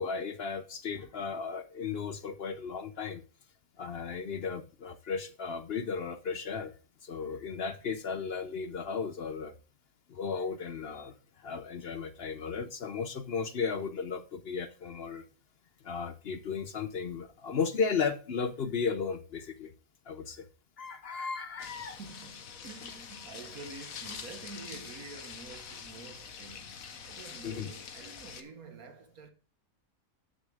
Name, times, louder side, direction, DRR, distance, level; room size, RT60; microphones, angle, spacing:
voice 1, 0.0-3.2 3.8-6.7 7.0-9.5 10.1-15.3 15.8-19.7 20.1-20.5 20.8-22.0 27.4-27.7, left 5 dB, 55° left, 0.8 m, -35 dB
sound 1, 21.6-28.4, left 6 dB, 80° left, 1.4 m, -45 dB
voice 2, 22.0-29.3, right 4 dB, 90° right, 1.8 m, -48 dB
12.0 x 6.7 x 3.4 m
omnidirectional pair, 1.5 m